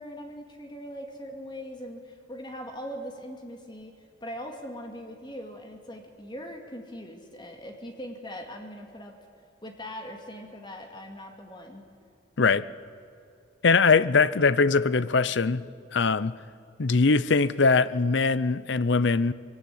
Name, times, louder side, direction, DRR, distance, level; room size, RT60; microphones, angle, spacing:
voice 1, 0.0-3.9 4.2-9.2 9.6-11.8, equal, 25° left, 2.3 m, -40 dB
voice 2, 12.4-12.7 13.6-15.7 15.9-16.4 16.8-19.3, left 4 dB, 65° left, 0.6 m, -22 dB
22.5 x 17.0 x 9.5 m
head